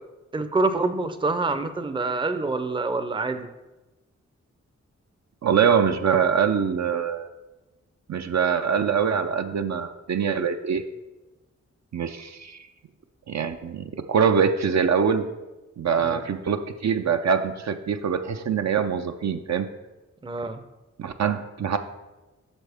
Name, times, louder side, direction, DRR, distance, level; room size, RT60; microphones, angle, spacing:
voice 1, 0.3-3.5 16.0-16.2 20.2-20.6, right 3 dB, 15° right, 10 dB, 0.5 m, -26 dB
voice 2, 5.4-7.3 8.1-10.8 11.9-12.6 13.3-15.3 15.8-19.7 21.0-21.8, right 7 dB, 65° right, 7 dB, 0.5 m, -24 dB
8.1 x 6.4 x 3.4 m, 1.1 s
cardioid pair, 65°, 30 cm